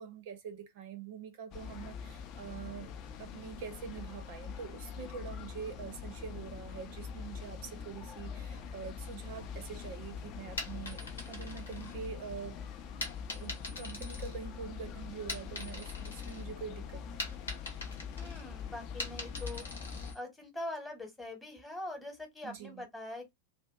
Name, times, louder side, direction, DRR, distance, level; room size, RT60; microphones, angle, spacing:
voice 1, 0.0-12.6 13.3-17.4 22.4-22.8, right 7 dB, 50° right, 0.5 m, -45 dB
sound 1, 1.5-20.2, left 6 dB, 40° left, 0.4 m, -43 dB
sound 2, 10.6-12.4 13.0-14.8 15.1-16.4 16.8-20.2, left 2 dB, 75° left, 1.0 m, -43 dB
voice 2, 18.1-19.6 20.1-23.3, left 1 dB, 10° left, 1.0 m, -43 dB
2.5 x 2.2 x 2.3 m
figure-of-eight pair, 90°, 0 cm